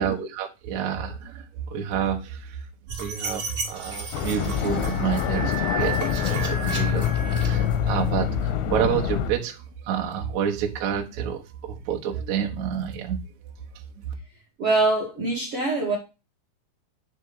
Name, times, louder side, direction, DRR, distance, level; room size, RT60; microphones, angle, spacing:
voice 1, 0.0-2.6 3.0-7.1 7.3-13.2 14.0-14.1, right 8 dB, 90° right, 1.6 m, -29 dB
sound 1, 2.9-8.1, right 4 dB, 30° right, 1.8 m, -34 dB
sound 2, 4.1-9.3, left 9 dB, 85° left, 3.0 m, -25 dB
voice 2, 14.6-16.0, right 3 dB, 55° right, 1.6 m, -24 dB
9.2 x 3.5 x 4.9 m
omnidirectional pair, 5.2 m